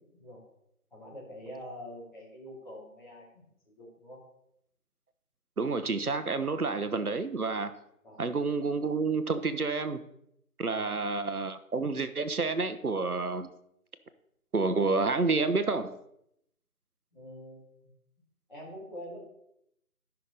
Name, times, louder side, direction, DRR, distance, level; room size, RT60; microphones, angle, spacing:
voice 1, 0.9-4.2 8.0-8.2 10.7-11.0 17.1-17.6 18.5-19.2, equal, 30° left, -6 dB, 3.2 m, -45 dB
voice 2, 5.6-7.7 8.2-10.0 10.6-13.5 14.5-16.0, right 3 dB, 75° right, 11 dB, 0.9 m, -29 dB
14.5 x 5.9 x 3.3 m, 0.77 s
figure-of-eight pair, 170°, 44 cm